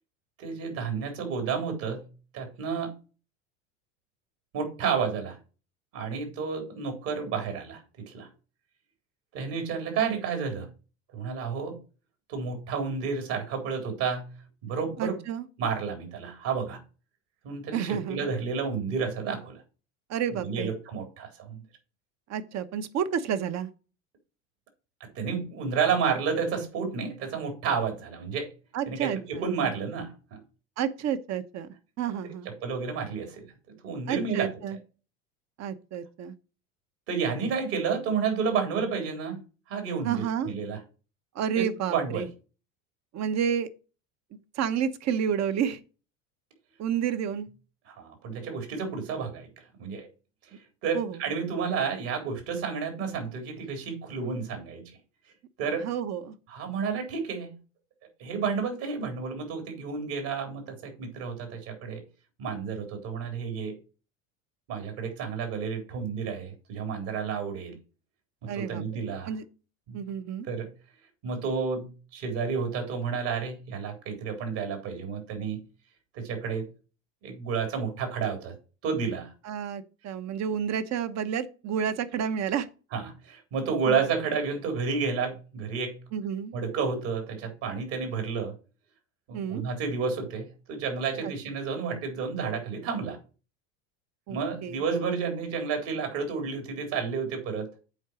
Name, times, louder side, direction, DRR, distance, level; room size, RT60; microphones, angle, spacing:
voice 1, 0.4-2.1 2.3-2.9 4.5-5.4 5.9-8.3 9.3-10.7 11.1-11.8 12.3-14.3 14.6-15.2 15.6-16.8 17.4-19.6 20.3-21.6 25.2-28.5 28.9-30.4 32.2-33.5 33.8-34.5 37.1-39.4 39.7-40.8 41.6-42.3 47.9-49.5 49.8-50.1 50.8-54.9 55.6-55.9 56.5-57.5 58.2-62.0 62.4-63.7 64.7-67.8 68.4-69.3 69.9-70.0 70.5-70.7 71.2-75.6 76.1-76.7 77.2-78.6 78.8-79.3 82.9-86.0 86.5-88.5 89.3-93.2 94.3-97.7, right 5 dB, 60° right, 3.8 m, -31 dB
voice 2, 15.0-15.5 17.7-18.3 20.1-20.7 22.3-23.7 28.7-29.7 30.8-31.7 32.0-32.5 34.1-34.8 35.6-36.3 40.0-40.5 41.3-42.3 43.1-43.7 44.5-45.8 46.8-47.5 50.9-51.2 55.8-56.3 68.5-69.4 69.9-70.5 79.4-82.7 83.8-84.1 86.1-86.5 89.3-89.6 91.2-91.3 94.3-94.8, right 8 dB, 40° right, 1.1 m, -30 dB
8.0 x 4.8 x 6.2 m
hypercardioid pair, 95°, 40 cm